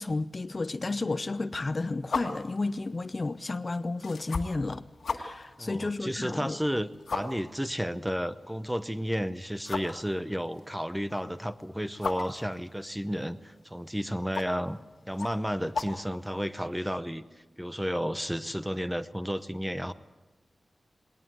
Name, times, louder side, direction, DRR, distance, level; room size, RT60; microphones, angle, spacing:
voice 1, 0.0-4.8 5.1-6.6, left 3 dB, 35° left, 0.6 m, -32 dB
sound 1, 2.0-16.7, left 4 dB, 85° left, 1.8 m, -40 dB
voice 2, 5.6-14.8 15.1-17.2 17.6-19.9, equal, 5° right, 0.7 m, -32 dB
19.5 x 19.0 x 7.8 m
wide cardioid pair, 130°, 0 cm